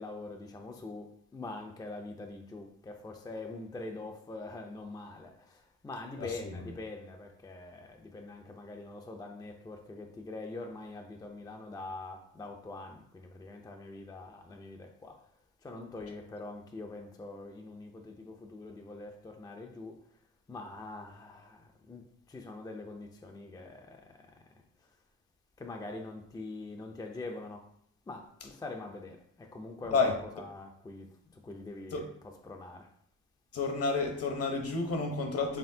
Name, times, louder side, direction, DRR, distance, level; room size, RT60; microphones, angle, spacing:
voice 1, 0.0-15.3 15.6-20.1 20.5-24.4 24.8-24.9 25.6-27.7 28.1-32.0 32.4-32.9, left 2 dB, 15° left, 0.5 m, -44 dB
voice 2, 6.2-6.6 29.9-30.2 31.9-32.1 33.5-35.6, left 4 dB, 55° left, 0.9 m, -30 dB
4.2 x 3.5 x 2.7 m
cardioid pair, 90°, 30 cm